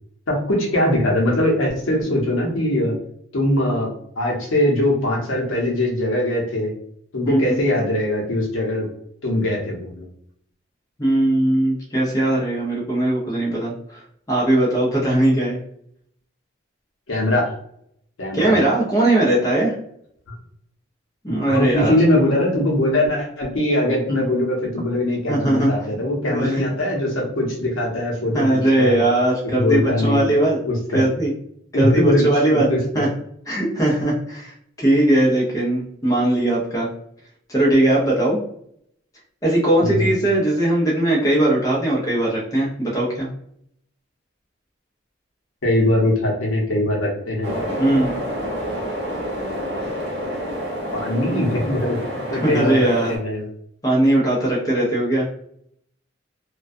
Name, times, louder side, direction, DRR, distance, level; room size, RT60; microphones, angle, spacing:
voice 1, 0.3-2.9 3.3-3.9 4.2-6.7 7.1-8.9 9.2-10.1 17.1-17.5 18.2-18.5 21.3-28.4 28.8-29.0 29.4-30.3 30.6-31.0 31.7-32.2 32.5-33.0 39.8-40.1 45.6-47.5 50.9-53.4, left 1 dB, 85° left, -2 dB, 0.8 m, -21 dB
voice 2, 7.3-7.6 11.0-15.6 18.3-19.7 21.2-21.9 24.1-24.2 25.3-25.7 26.3-26.6 28.3-30.6 30.9-31.3 31.7-32.7 32.9-33.1 33.5-36.9 37.5-38.4 39.4-43.3 47.8-48.2 52.4-53.1 53.8-55.2, right 1 dB, 15° left, -5 dB, 0.6 m, -19 dB
sound 1, 47.4-53.2, equal, 55° right, 0.8 m, -28 dB
2.2 x 2.2 x 2.5 m, 0.68 s
head